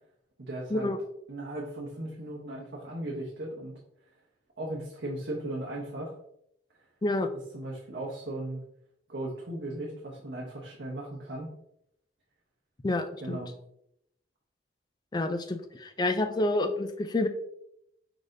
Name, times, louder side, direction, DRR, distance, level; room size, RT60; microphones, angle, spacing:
voice 1, 0.4-0.9 1.3-3.7 4.6-6.1 7.3-8.7 9.1-11.5 13.2-13.5, right 1 dB, 60° right, -4 dB, 0.9 m, -37 dB
voice 2, 12.8-13.4 15.1-17.3, left 2 dB, 20° left, 7 dB, 0.3 m, -28 dB
4.8 x 4.0 x 2.6 m, 0.76 s
head